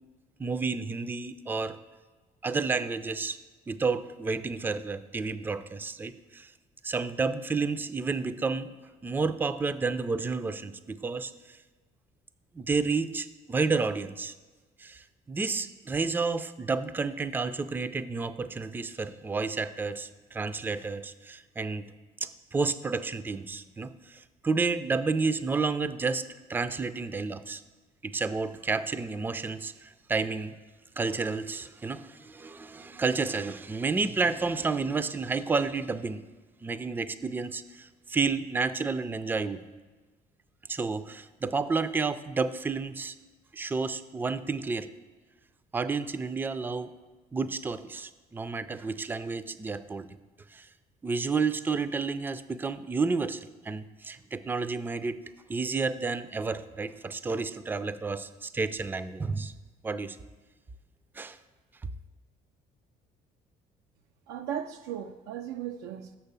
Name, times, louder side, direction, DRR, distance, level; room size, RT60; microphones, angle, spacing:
voice 1, 0.4-1.8 2.4-3.4 3.7-6.5 6.8-8.7 9.0-11.6 12.5-14.3 14.8-21.9 22.2-27.6 28.0-30.6 31.0-36.2 36.6-39.6 40.7-43.2 43.5-44.9 45.7-46.9 47.3-50.1 50.5-50.7 51.0-55.2 55.5-59.5 59.8-60.2 61.1-61.4, right 4 dB, 10° right, 0.4 m, -31 dB
voice 2, 64.3-66.2, right 9 dB, 90° right, 0.4 m, -36 dB
6.5 x 5.7 x 6.8 m
cardioid pair, 110°, 17 cm